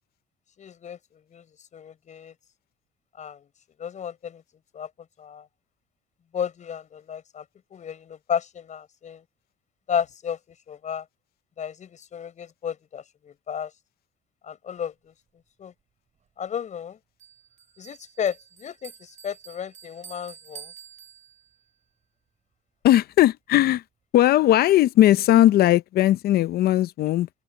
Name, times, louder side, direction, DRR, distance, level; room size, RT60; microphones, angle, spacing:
voice 1, 0.6-2.4 3.1-3.5 3.8-4.4 4.7-5.5 6.3-7.4 7.7-9.2 9.9-11.1 11.6-13.7 14.4-15.1 15.6-15.7 16.4-17.0 17.8-20.7, left 8 dB, 45° left, 6.3 m, -33 dB
Bell, 17.2-21.7, right 8 dB, 45° right, 6.4 m, -48 dB
voice 2, 22.8-23.8 24.1-27.3, left 13 dB, 65° left, 0.6 m, -18 dB
open air
cardioid pair, 110°, 17 cm